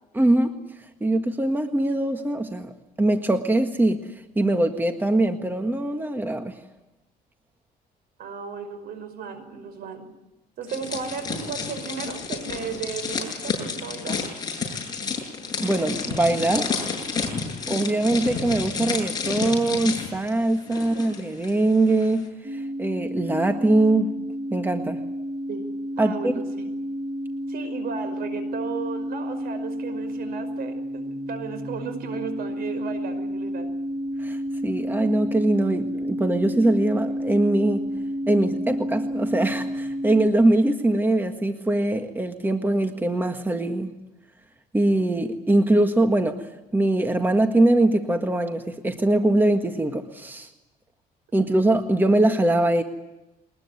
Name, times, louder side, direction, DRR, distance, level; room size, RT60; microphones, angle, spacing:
voice 1, 0.1-0.6 1.0-2.7 3.0-4.0 4.3-6.6 15.6-16.8 17.7-24.1 24.5-25.0 26.0-26.3 34.2-37.9 38.3-43.9 44.7-46.5 46.7-50.5 51.3-52.8, right 1 dB, 10° right, 6 dB, 1.7 m, -22 dB
voice 2, 8.2-10.0 10.6-14.2 20.7-21.0 25.5-25.7 26.0-26.7 27.5-33.7, right 6 dB, 65° right, 10 dB, 5.5 m, -35 dB
sound 1, 10.7-21.5 21.8-22.1, left 5 dB, 25° left, 7.7 m, -30 dB
sound 2, 22.4-40.3, equal, 30° right, 5.4 m, -31 dB
22.0 x 20.5 x 9.6 m, 0.98 s
cardioid pair, 110°, 17 cm